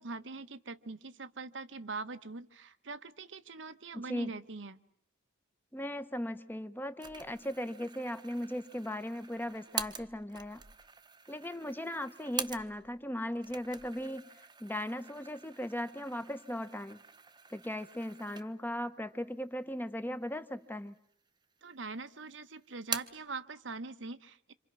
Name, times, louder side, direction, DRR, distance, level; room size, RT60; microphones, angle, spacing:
voice 1, 0.0-4.8 21.6-24.5, right 3 dB, 75° right, 11 dB, 1.0 m, -43 dB
voice 2, 3.9-4.4 5.7-10.6 11.3-14.3 14.6-17.0 17.5-20.9, left 1 dB, 10° left, 11 dB, 0.9 m, -38 dB
sound 1, 7.0-13.0 13.3-18.8 19.2-19.3 20.1-20.8 21.1-21.9 22.2-23.3, right 6 dB, 25° right, 1.0 m, -44 dB
27.0 x 27.0 x 6.1 m, 0.66 s
head